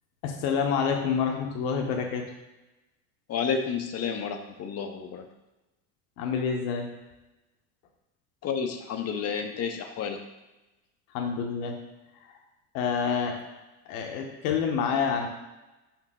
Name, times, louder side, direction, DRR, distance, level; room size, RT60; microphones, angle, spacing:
voice 1, 0.2-2.2 6.2-6.9 11.1-11.7 12.7-13.3 13.9-15.3, left 6 dB, 70° left, 2 dB, 1.1 m, -27 dB
voice 2, 3.3-5.3 8.4-10.2, left 6 dB, 35° left, 6 dB, 0.6 m, -31 dB
5.5 x 4.6 x 3.7 m, 1.0 s
hypercardioid pair, 95°, 46 cm